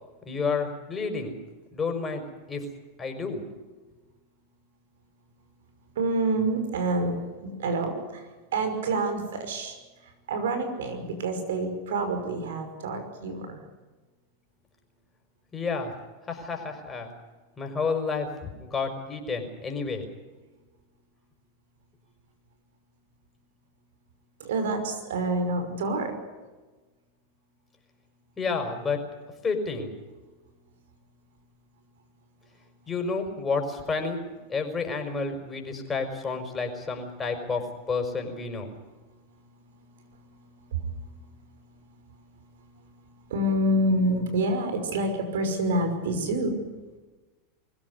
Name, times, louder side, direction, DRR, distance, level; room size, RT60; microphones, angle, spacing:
voice 1, 0.3-1.4 1.7-2.2 2.5-2.6 3.0-3.4 15.5-15.9 16.3-17.1 17.6-20.1 28.4-29.0 29.4-29.9 32.9-34.2 34.5-38.7, left 4 dB, 20° left, 4 dB, 5.6 m, -30 dB
voice 2, 6.0-9.8 10.0-13.6 24.4-26.2 39.4-41.4 41.7-46.6, right 2 dB, 80° right, 7 dB, 5.6 m, -28 dB
24.0 x 16.0 x 9.8 m, 1.2 s
hypercardioid pair, 110°, 0 cm